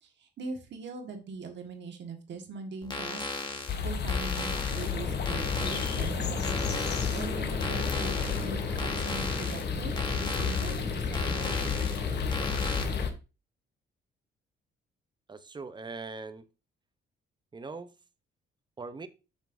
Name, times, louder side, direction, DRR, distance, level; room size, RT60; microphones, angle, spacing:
voice 1, 0.0-3.3 3.6-6.4 7.1-11.7, right 4 dB, 65° right, 1.5 m, -41 dB
sound 1, 2.8-12.8, left 2 dB, 20° left, 1.2 m, -37 dB
sound 2, 3.7-13.1, left 6 dB, 60° left, 0.9 m, -32 dB
sound 3, 4.7-13.1, left 3 dB, 40° left, 1.9 m, -36 dB
voice 2, 15.3-16.4 17.5-17.9 18.8-19.1, right 4 dB, 20° right, 0.6 m, -41 dB
7.4 x 5.3 x 2.6 m
cardioid pair, 90°, 20 cm